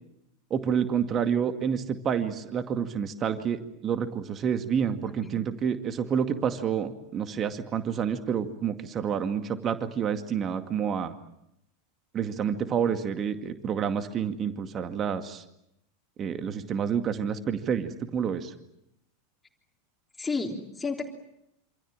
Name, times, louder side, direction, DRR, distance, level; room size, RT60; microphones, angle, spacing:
voice 1, 0.5-11.1 12.1-15.4 16.2-18.5, right 7 dB, 30° right, 8 dB, 2.2 m, -29 dB
voice 2, 20.2-21.1, left 4 dB, 15° left, 2 dB, 3.4 m, -32 dB
27.5 x 26.5 x 7.5 m, 0.81 s
figure-of-eight pair, 85°, 0 cm